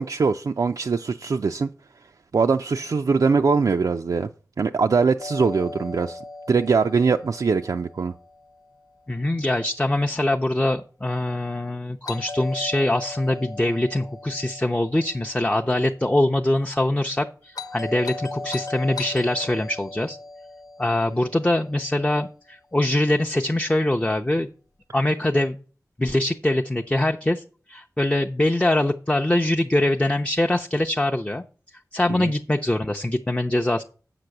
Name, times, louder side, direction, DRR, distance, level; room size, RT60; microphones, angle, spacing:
voice 1, 0.0-1.7 2.3-4.3 4.6-6.2 6.5-8.1 32.2-32.3, right 5 dB, 70° right, 0.4 m, -22 dB
Doorbell, 5.2-9.2 12.1-16.3 17.5-22.0, left 3 dB, 80° left, 1.1 m, -38 dB
voice 2, 9.1-20.2 20.8-24.5 24.9-25.6 26.0-31.4 31.9-33.8, left 1 dB, 20° left, 0.6 m, -23 dB
7.6 x 6.0 x 6.5 m
wide cardioid pair, 65°, 6 cm